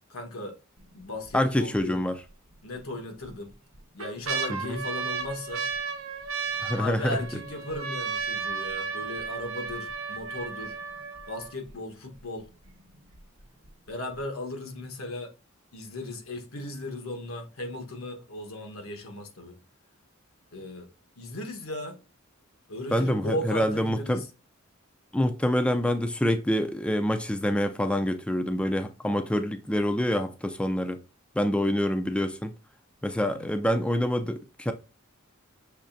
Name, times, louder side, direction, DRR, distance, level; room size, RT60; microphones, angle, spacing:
voice 1, 0.1-0.6 0.9-2.0 2.6-3.6 3.9-5.7 6.8-10.8 11.3-12.5 13.9-15.3 15.7-19.6 20.5-20.9 21.2-22.0 22.7-24.2 33.2-33.5, left 1 dB, 90° left, 1.2 m, -36 dB
sound 1, 0.8-1.3 1.8-1.9 2.8-3.3 3.7-11.7 12.4-12.5 12.7-13.2 13.6-13.7, right 5 dB, 85° right, 0.9 m, -34 dB
voice 2, 1.3-2.2 4.5-4.8 6.6-7.4 22.9-24.3 25.1-31.0 31.3-32.5 33.0-34.7, equal, 5° left, 0.4 m, -26 dB
6.5 x 3.2 x 2.6 m
head